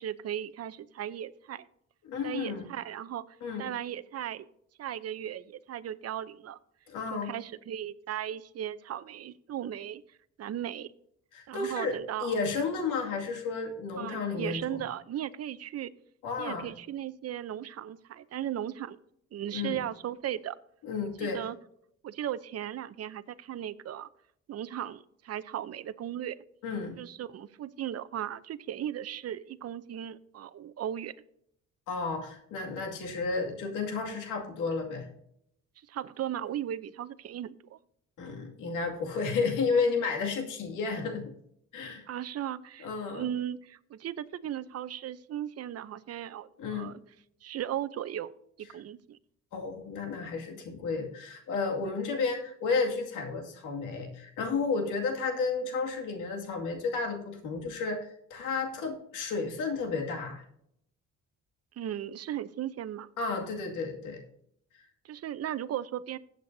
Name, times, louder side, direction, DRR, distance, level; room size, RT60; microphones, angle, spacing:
voice 1, 0.0-1.7 2.2-4.4 4.8-6.6 7.1-10.0 10.4-10.9 11.5-12.4 14.0-15.9 16.4-19.0 19.3-20.6 21.2-21.6 22.0-24.1 24.5-26.4 27.0-31.1 35.9-37.8 42.1-47.0 47.4-48.3 48.6-49.2 61.8-63.1 65.0-66.2, right 11 dB, 55° right, 13 dB, 0.7 m, -37 dB
voice 2, 2.0-2.7 3.4-3.7 6.9-7.3 11.3-14.8 16.2-16.7 19.5-19.8 20.8-21.4 26.6-27.0 31.9-35.1 38.2-41.3 41.7-42.0 42.8-43.3 46.6-46.9 49.5-60.4 63.2-64.2, left 4 dB, 90° left, 2 dB, 2.3 m, -32 dB
15.0 x 8.2 x 2.7 m, 0.70 s
cardioid pair, 90°, 30 cm